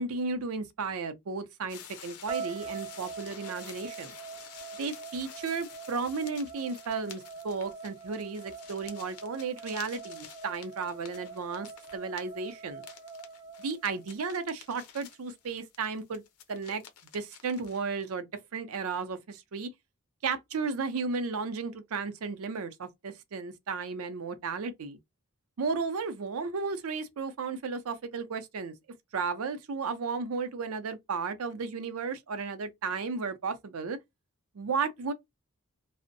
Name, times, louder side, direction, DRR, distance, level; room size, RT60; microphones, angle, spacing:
voice 1, 0.0-4.2 4.8-12.9 13.6-16.2 16.5-16.8 17.1-19.7 20.2-25.0 25.6-28.8 29.1-34.0 34.5-35.1, right 4 dB, 70° right, 0.5 m, -34 dB
sound 1, 1.7-17.8, left 8 dB, 85° left, 0.6 m, -50 dB
sound 2, 2.3-14.4, right 5 dB, 15° right, 0.4 m, -44 dB
2.4 x 2.0 x 2.5 m
head